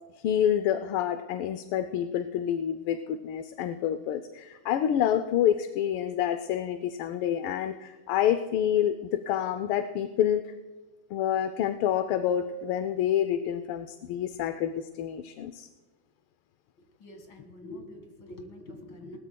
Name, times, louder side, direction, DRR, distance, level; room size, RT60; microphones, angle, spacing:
voice 1, 0.2-10.4 11.1-15.7, left 10 dB, 85° left, 9 dB, 1.5 m, -28 dB
voice 2, 17.0-19.2, left 1 dB, 70° left, 4 dB, 2.6 m, -45 dB
20.0 x 18.0 x 2.2 m, 1.3 s
omnidirectional pair, 2.3 m